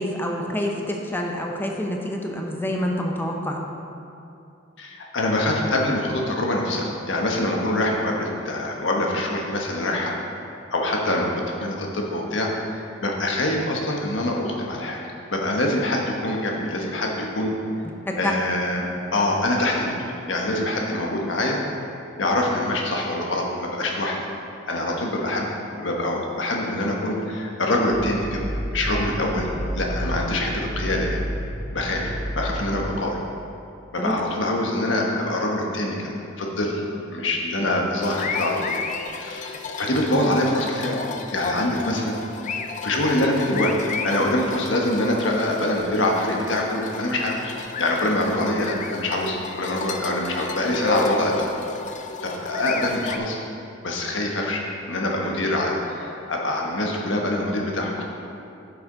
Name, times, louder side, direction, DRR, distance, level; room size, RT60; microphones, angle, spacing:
voice 1, 0.0-3.6 18.2-18.3 34.0-34.1, equal, 10° left, 1 dB, 0.8 m, -27 dB
voice 2, 4.8-10.2 10.7-15.0 15.3-17.5 18.2-18.9 19.1-21.6 22.2-24.2 24.7-25.5 25.8-28.4 28.7-29.5 29.7-31.1 31.7-33.2 33.9-36.1 36.4-36.8 37.1-38.8 39.1-41.0 41.3-42.2 42.8-51.5 52.2-53.4 53.8-58.0, left 1 dB, 80° left, 0 dB, 1.3 m, -24 dB
sound 1, 27.9-33.0, right 1 dB, 25° right, 0.8 m, -30 dB
sound 2, 38.0-53.2, left 4 dB, 40° left, 0.5 m, -33 dB
10.0 x 6.9 x 3.9 m, 2.7 s
head